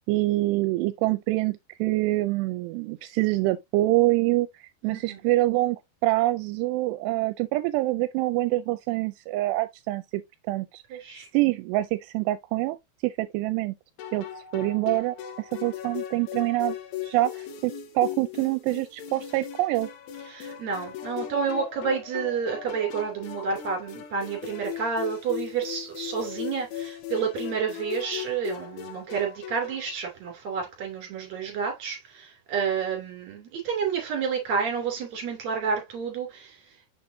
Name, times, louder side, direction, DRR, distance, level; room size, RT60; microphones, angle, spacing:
voice 1, 0.0-10.2 10.5-11.0 11.3-12.8 13.0-13.8 14.1-16.8 17.0-19.9, right 18 dB, 85° right, 2.6 m, -26 dB
voice 2, 4.8-5.2 10.9-11.3 20.3-36.6, right 6 dB, 45° right, 3.7 m, -30 dB
sound 1, 14.0-29.9, left 11 dB, 75° left, 3.1 m, -38 dB
7.0 x 5.8 x 2.7 m
omnidirectional pair, 4.8 m